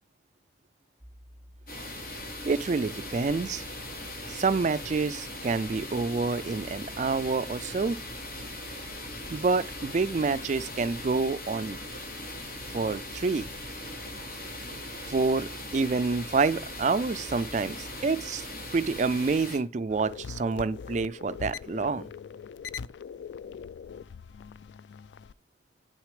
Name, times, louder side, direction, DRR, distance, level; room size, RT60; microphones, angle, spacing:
sound 1, 1.0-18.8, equal, 25° right, 2.9 m, -52 dB
sound 2, 1.7-19.6, left 1 dB, 50° left, 4.5 m, -40 dB
voice 1, 2.5-3.6 4.3-8.0 9.3-11.8 12.7-13.5 15.1-18.5 18.7-22.1, right 4 dB, 40° right, 0.4 m, -28 dB
sound 3, 19.9-25.3, left 6 dB, 85° left, 0.3 m, -41 dB
9.1 x 6.4 x 4.9 m
head